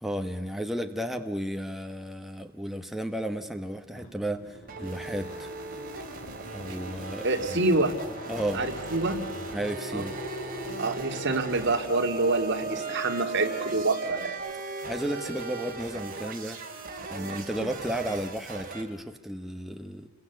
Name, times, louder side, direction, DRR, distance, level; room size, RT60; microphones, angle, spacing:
voice 1, 0.0-5.5 6.4-7.7 8.3-8.6 9.5-10.2 14.8-16.6 17.0-20.1, right 1 dB, ahead, 5 dB, 1.2 m, -33 dB
sound 1, 3.8-14.9, left 1 dB, 75° left, 5.0 m, -43 dB
sound 2, 4.7-18.8, right 4 dB, 45° right, 3.5 m, -37 dB
voice 2, 7.2-7.9 8.5-9.3 9.9-10.0 10.8-14.3, right 2 dB, 60° right, 6 dB, 2.3 m, -26 dB
28.5 x 22.5 x 8.0 m, 1.2 s
head